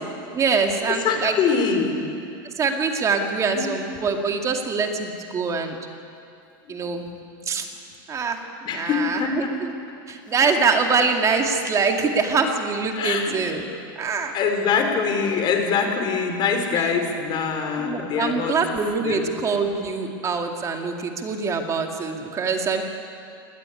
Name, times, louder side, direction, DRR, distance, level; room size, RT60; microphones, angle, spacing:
voice 1, 0.3-1.3 2.6-5.8 6.7-7.0 7.5-7.7 8.1-8.4 8.7-9.7 10.1-13.6 14.0-14.3 17.8-22.8, right 4 dB, 25° right, 3 dB, 2.2 m, -24 dB
voice 2, 0.9-2.0 3.5-3.7 6.7-6.9 8.6-9.5 12.9-13.3 14.3-18.6 19.0-19.3, left 6 dB, 40° left, 5 dB, 3.4 m, -24 dB
19.0 x 14.0 x 9.8 m, 2.5 s
supercardioid pair, 120°, 12 cm